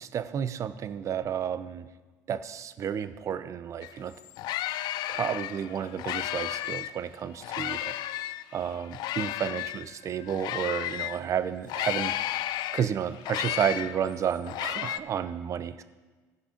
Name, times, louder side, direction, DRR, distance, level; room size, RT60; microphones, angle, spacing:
voice 1, 0.0-1.9 2.3-4.1 5.1-8.0 8.5-12.2 12.7-15.8, right 8 dB, 40° right, 13 dB, 0.5 m, -31 dB
sound 1, 3.8-3.9 4.2-7.0 7.4-11.2 11.7-15.0, left 14 dB, 60° left, 0.4 m, -33 dB
15.0 x 5.5 x 5.0 m, 1.3 s
supercardioid pair, 110°, 8 cm